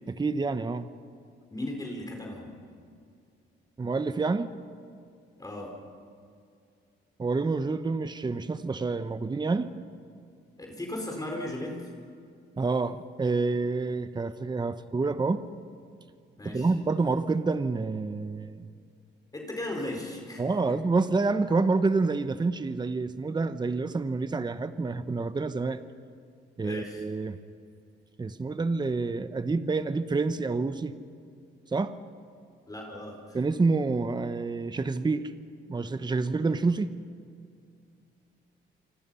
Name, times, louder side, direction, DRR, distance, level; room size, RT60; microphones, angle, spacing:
voice 1, 0.1-0.9 3.8-4.5 7.2-9.7 12.6-15.4 16.4-18.6 20.4-25.8 26.6-27.4 28.2-30.9 31.7-31.9 33.3-35.3 35.7-36.9, right 3 dB, 20° right, 11 dB, 1.0 m, -28 dB
voice 2, 1.5-2.5 5.4-5.7 10.6-11.8 16.4-16.7 19.3-20.7 26.6-27.0 32.7-33.4, left 1 dB, 20° left, 1 dB, 4.7 m, -36 dB
27.5 x 25.0 x 5.7 m, 2.3 s
cardioid pair, 90°, 20 cm